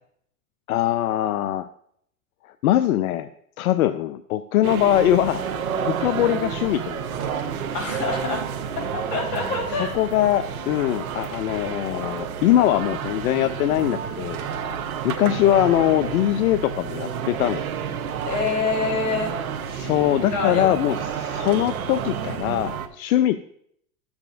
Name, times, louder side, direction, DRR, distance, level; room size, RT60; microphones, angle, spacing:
voice 1, 0.7-1.7 2.6-3.3 3.6-5.4 5.8-7.4 9.8-14.4 15.0-17.6 19.7-23.4, left 13 dB, 80° left, 12 dB, 0.5 m, -22 dB
sound 1, 4.6-22.9, right 7 dB, 80° right, 0.9 m, -30 dB
voice 2, 7.7-8.5 8.8-9.9 18.2-19.3 20.3-21.1, left 4 dB, 50° left, -1 dB, 4.1 m, -26 dB
12.5 x 7.2 x 2.5 m, 0.68 s
hypercardioid pair, 110°, 42 cm